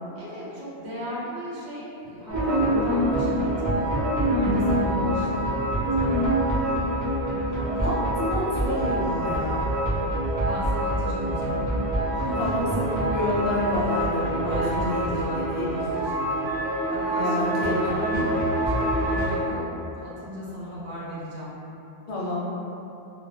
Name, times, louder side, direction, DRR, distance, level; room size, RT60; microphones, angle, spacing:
voice 1, 0.1-4.0 4.3-5.5 6.0-6.6 10.4-11.7 12.1-12.6 14.4-16.6 16.9-18.3 19.0-21.6, equal, 85° right, -8 dB, 1.0 m, -36 dB
sound 1, 2.3-19.4, right 1 dB, 20° right, 0.5 m, -25 dB
voice 2, 7.7-9.7 12.4-15.8 17.1-18.0 22.1-22.4, left 1 dB, 60° left, -7 dB, 0.7 m, -28 dB
2.1 x 2.0 x 3.1 m, 2.9 s
omnidirectional pair, 1.1 m